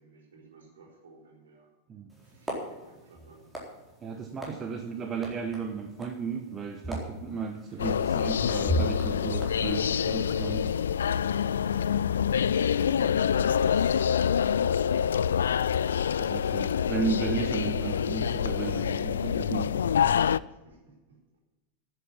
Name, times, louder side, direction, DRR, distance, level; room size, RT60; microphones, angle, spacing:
voice 1, 0.0-1.7 2.2-3.5 7.6-8.2 10.5-15.5 20.1-21.4, right 3 dB, 65° right, 0 dB, 4.6 m, -57 dB
sound 1, 2.1-10.7, right 1 dB, 10° right, 4.1 m, -38 dB
voice 2, 4.0-10.7 16.0-19.7, right 5 dB, 25° right, 5 dB, 1.1 m, -34 dB
sound 2, 7.8-20.4, left 8 dB, 65° left, 0.3 m, -26 dB
10.5 x 8.0 x 8.8 m, 1.1 s
figure-of-eight pair, 90°, 0 cm